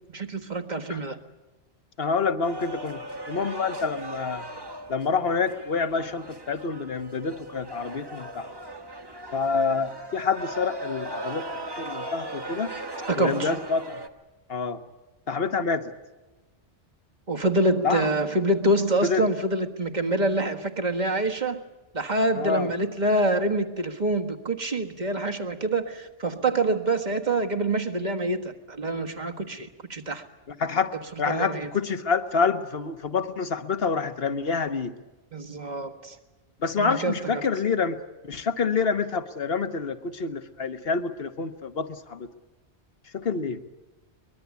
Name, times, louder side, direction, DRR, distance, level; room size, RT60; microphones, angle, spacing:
voice 1, 0.1-1.2 13.1-13.6 17.3-21.6 21.9-30.2 31.2-31.7 35.3-36.2 36.8-37.4, right 1 dB, 40° right, 5 dB, 1.7 m, -26 dB
voice 2, 2.0-4.4 4.9-8.5 9.3-12.7 13.2-14.0 14.5-14.8 15.3-15.9 17.8-18.1 19.0-19.2 22.3-22.7 30.5-30.9 31.2-35.0 36.6-38.0 38.2-42.3 43.1-43.6, left 5 dB, 55° left, 9 dB, 1.5 m, -27 dB
sound 1, 2.4-14.1, right 1 dB, 20° right, 1.4 m, -38 dB
23.5 x 21.5 x 8.4 m, 1.1 s
omnidirectional pair, 1.2 m